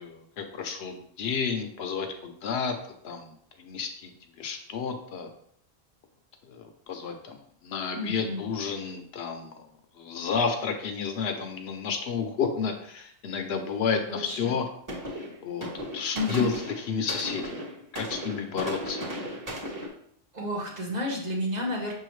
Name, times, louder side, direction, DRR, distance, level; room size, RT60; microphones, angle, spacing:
voice 1, 0.0-2.8 3.0-4.1 4.4-5.3 6.5-9.7 10.0-14.7 15.4-16.5 16.9-17.6 17.9-19.0, left 6 dB, 75° left, 5 dB, 0.8 m, -31 dB
voice 2, 7.9-8.4 14.1-14.6 16.1-16.5 19.0-19.2 20.3-21.9, left 1 dB, 45° right, -2 dB, 1.0 m, -31 dB
sound 1, 14.4-14.6 14.9-19.9, equal, 20° right, 1.0 m, -36 dB
6.0 x 2.8 x 3.1 m, 0.66 s
omnidirectional pair, 1.1 m